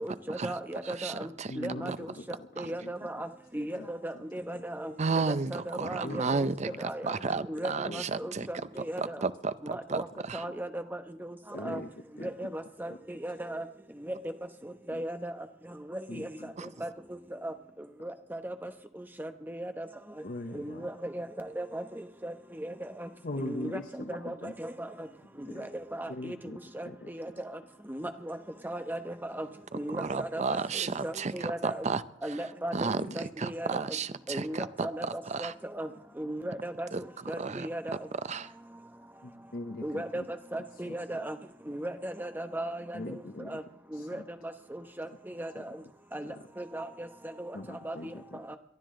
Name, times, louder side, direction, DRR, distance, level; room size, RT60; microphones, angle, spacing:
voice 1, 0.0-1.3 1.6-3.3 3.5-4.9 5.2-6.5 6.8-7.2 7.5-9.2 9.6-10.1 10.3-11.4 11.6-11.8 12.2-13.6 14.1-14.2 14.6-15.3 15.9-16.3 16.8-17.5 18.0-18.7 19.0-19.9 20.5-23.1 23.4-25.1 25.6-26.4 26.7-27.6 27.9-28.4 28.6-29.5 29.7-31.9 32.2-33.8 34.3-35.1 35.4-35.9 36.2-36.9 37.3-38.0 39.8-41.4 41.7-43.6 43.9-44.2 44.7-45.8 46.1-47.1 47.4-47.6 47.8-48.1 48.5-48.6, right 1 dB, 10° right, 7 dB, 1.0 m, -37 dB
voice 2, 0.9-1.5 1.9-2.0 2.6-2.7 5.0-8.5 9.0-10.4 16.6-16.7 29.9-32.0 32.7-35.5 36.9-37.0 37.4-37.7 38.2-38.5, right 4 dB, 35° right, 14 dB, 0.6 m, -33 dB
voice 3, 1.5-2.9 3.8-3.9 4.1-4.2 4.5-4.6 6.0-6.3 6.7-6.8 7.8-8.3 11.5-11.9 12.2-12.5 12.9-13.0 14.9-15.0 16.1-16.5 20.2-20.9 23.2-24.5 25.4-25.7 26.1-27.1 32.9-33.2 39.2-40.3 40.9-41.0 42.9-43.6 43.9-44.2 45.6-45.7 46.2-46.4 47.5-48.6, left 1 dB, 50° left, 7 dB, 0.8 m, -41 dB
23.0 x 12.5 x 3.8 m, 0.74 s
head